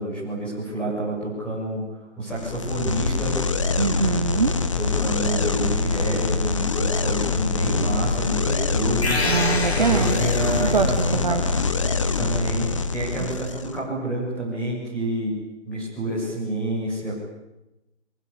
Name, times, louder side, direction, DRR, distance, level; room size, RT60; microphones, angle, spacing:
voice 1, 0.0-3.4 4.8-9.2 9.8-11.4 12.1-15.3 15.6-17.2, right 1 dB, 5° left, -7 dB, 7.3 m, -28 dB
sound 1, 2.3-13.8, left 4 dB, 25° left, 1.4 m, -24 dB
voice 2, 3.8-4.5 9.2-10.2 10.6-10.9 11.2-11.4, right 5 dB, 40° right, 6 dB, 2.0 m, -23 dB
sound 2, 9.0-10.9, left 2 dB, 65° left, 6.6 m, -27 dB
26.5 x 24.5 x 8.7 m, 0.92 s
figure-of-eight pair, 170°, 35 cm